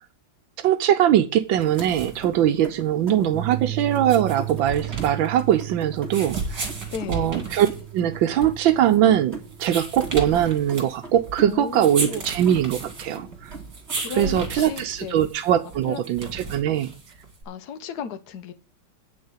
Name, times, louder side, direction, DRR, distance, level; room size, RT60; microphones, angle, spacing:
voice 1, 0.6-6.6 7.1-7.7 7.9-13.6 14.1-16.9, right 10 dB, 80° right, 9 dB, 1.5 m, -21 dB
sound 1, 1.5-17.4, right 3 dB, 60° right, 3.2 m, -35 dB
sound 2, 1.6-15.0, right 3 dB, 35° right, 2.4 m, -42 dB
sound 3, 3.3-11.8, right 14 dB, 5° left, 1.0 m, -36 dB
voice 2, 6.9-7.3 11.4-12.3 14.0-15.3 15.9-16.0 17.4-18.5, left 6 dB, 60° left, 11 dB, 1.4 m, -35 dB
8.9 x 6.6 x 7.2 m, 0.34 s
omnidirectional pair, 2.1 m